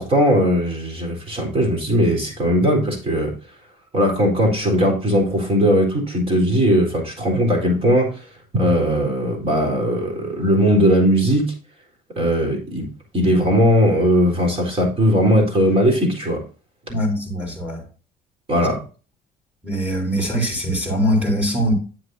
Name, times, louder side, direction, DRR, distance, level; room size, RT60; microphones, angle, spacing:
voice 1, 0.0-3.3 3.9-8.1 8.5-11.5 12.2-12.9 13.1-16.4 18.5-18.8, equal, 35° right, 4.1 m, -18 dB
voice 2, 16.9-17.8 19.6-21.7, equal, 10° right, 4.2 m, -22 dB
9.2 x 8.0 x 2.7 m
cardioid pair, 110°, 17 cm